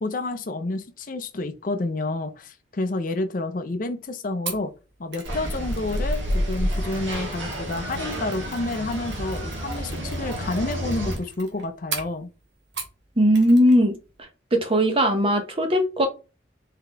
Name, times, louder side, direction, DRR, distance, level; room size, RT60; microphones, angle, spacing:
voice 1, 0.0-4.7 5.0-12.3, left 2 dB, 45° left, 0.5 m, -29 dB
Mechanisms, 4.5-13.0 13.3-13.8 14.1-14.2, right 5 dB, 65° right, 1.2 m, -40 dB
sound 1, 5.2-11.2, equal, 90° right, 1.7 m, -29 dB
voice 2, 13.2-13.9 14.5-16.1, equal, 30° right, 0.8 m, -19 dB
3.8 x 3.6 x 3.3 m
head